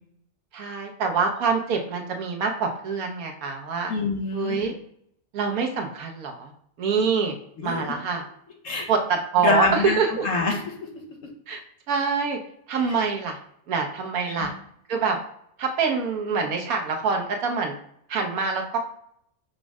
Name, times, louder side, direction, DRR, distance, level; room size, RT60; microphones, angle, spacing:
voice 1, 0.5-3.9 4.3-4.7 5.3-6.5 6.8-7.3 7.6-8.2 8.9-10.3 11.5-11.6 11.9-12.4 12.7-13.4 13.7-14.5 14.9-15.2 15.6-17.7 18.1-18.8, right 5 dB, 80° right, 3 dB, 1.2 m, -25 dB
voice 2, 3.9-4.6 7.6-7.9 8.6-8.9 9.4-10.9 14.4-14.5, left 4 dB, 65° left, 0 dB, 1.2 m, -26 dB
5.2 x 2.1 x 4.7 m, 0.70 s
omnidirectional pair, 1.5 m